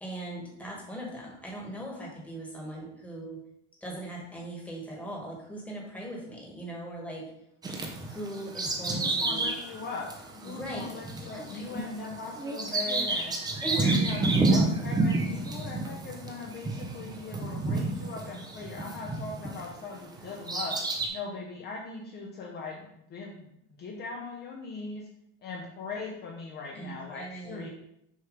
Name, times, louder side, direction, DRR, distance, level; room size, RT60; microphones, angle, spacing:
voice 1, 0.0-3.4 3.8-7.3 8.0-9.5 10.4-10.9 11.3-11.8 13.6-14.3 26.7-27.7, right 1 dB, 5° left, -3 dB, 1.5 m, -39 dB
Bird vocalization bird call bird song, 7.6-19.7 20.2-21.1, right 2 dB, 15° right, 0.6 m, -30 dB
voice 2, 8.9-10.1 10.3-13.3 13.7-23.5 23.8-25.1 25.4-27.7, left 4 dB, 35° left, -1 dB, 0.8 m, -40 dB
6.5 x 3.1 x 5.1 m, 0.78 s
cardioid pair, 160°, 31 cm